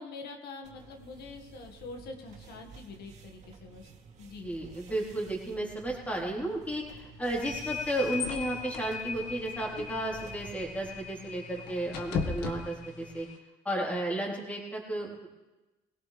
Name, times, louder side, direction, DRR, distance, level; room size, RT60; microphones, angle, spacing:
voice 1, 0.0-3.9 4.2-4.5, left 3 dB, 75° left, 3 dB, 1.9 m, -45 dB
sound 1, 0.6-11.0, right 5 dB, 45° right, 2.6 m, -52 dB
voice 2, 4.4-13.3 13.6-15.3, right 1 dB, 10° left, -3 dB, 4.0 m, -33 dB
sound 2, 7.4-13.4, left 7 dB, 45° left, 2.5 m, -41 dB
sound 3, 7.5-13.2, left 5 dB, 90° left, 1.7 m, -39 dB
22.0 x 17.5 x 3.4 m, 1.1 s
cardioid pair, 110°, 17 cm